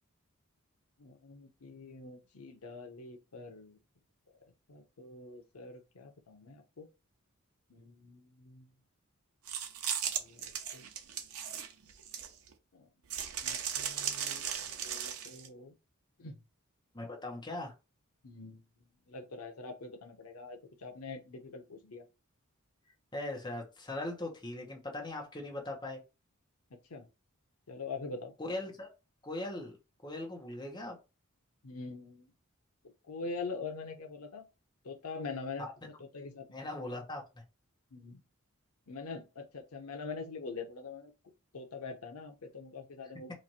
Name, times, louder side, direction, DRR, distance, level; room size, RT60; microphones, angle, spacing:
voice 1, 1.0-3.8 4.3-4.4 4.7-6.9 7.7-8.7 10.2-10.8 12.7-12.9 13.4-15.7 16.2-16.4 18.2-18.6 19.1-22.0 26.7-27.1 27.7-28.3 31.6-32.3 33.1-34.4 34.8-35.7 36.0-36.4 37.9-38.2 38.9-41.1 41.5-43.3, left 4 dB, 85° left, 0.7 m, -44 dB
sound 1, 9.5-12.5 13.1-15.5, right 9 dB, 80° right, 0.6 m, -37 dB
voice 2, 16.9-17.7 23.1-26.0 28.4-28.9 29.2-29.7 30.0-31.0 36.5-37.2, left 2 dB, 20° left, 0.9 m, -39 dB
3.1 x 2.5 x 4.0 m
head